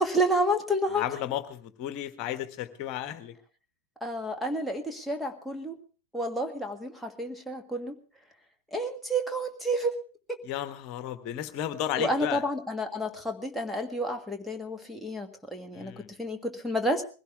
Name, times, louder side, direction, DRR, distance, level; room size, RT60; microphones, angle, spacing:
voice 1, 0.0-1.0 4.0-5.8 6.1-7.9 8.7-10.0 12.0-15.9 16.2-17.0, equal, ahead, 6 dB, 1.7 m, -30 dB
voice 2, 0.9-3.3 10.4-12.4 15.7-16.1, left 11 dB, 40° left, 11 dB, 1.4 m, -33 dB
21.5 x 16.5 x 3.4 m, 0.36 s
figure-of-eight pair, 90°, 0 cm